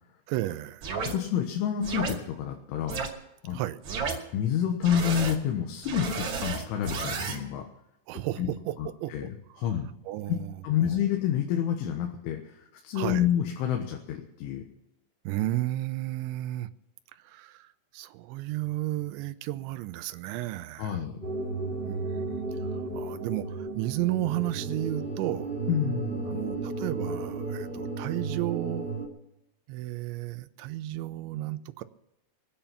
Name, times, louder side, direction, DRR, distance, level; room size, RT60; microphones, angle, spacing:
voice 1, 0.3-0.9 3.5-3.8 8.1-8.8 9.0-9.1 9.6-9.7 10.1-11.0 13.0-13.3 15.2-16.7 17.1-21.0 21.8-25.5 26.3-28.9 29.7-31.8, right 16 dB, 80° right, 3.0 m, -33 dB
sound 1, 0.8-1.1 1.8-2.1 2.9-3.1 3.8-4.2 4.8-5.4 5.8-7.4, right 5 dB, 45° right, 2.9 m, -32 dB
voice 2, 1.0-3.0 3.4-3.6 4.3-7.7 8.4-8.5 8.8-9.3 9.6-9.9 10.3-10.4 10.6-14.6 20.8-21.2 25.7-26.4, left 9 dB, 80° left, 3.7 m, -28 dB
sound 2, 21.2-29.1, right 3 dB, 20° right, 1.3 m, -34 dB
23.5 x 8.8 x 5.8 m
omnidirectional pair, 5.6 m